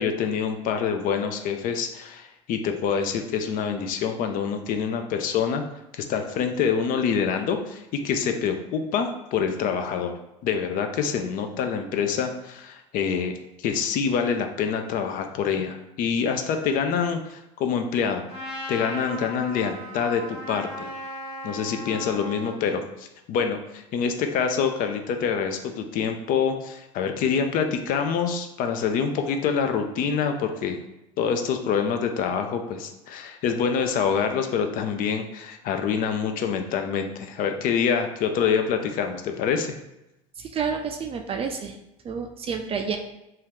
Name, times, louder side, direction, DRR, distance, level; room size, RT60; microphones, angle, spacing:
voice 1, 0.0-5.6 5.9-10.1 10.4-18.3 18.7-20.9 21.4-30.8 31.2-39.8, left 6 dB, 50° left, 6 dB, 0.4 m, -26 dB
Trumpet, 18.3-22.6, equal, 35° left, 1.1 m, -37 dB
voice 2, 40.4-41.8 42.0-43.0, right 6 dB, 35° right, 4 dB, 0.4 m, -29 dB
2.7 x 2.3 x 3.4 m, 0.92 s
supercardioid pair, 90°, 18 cm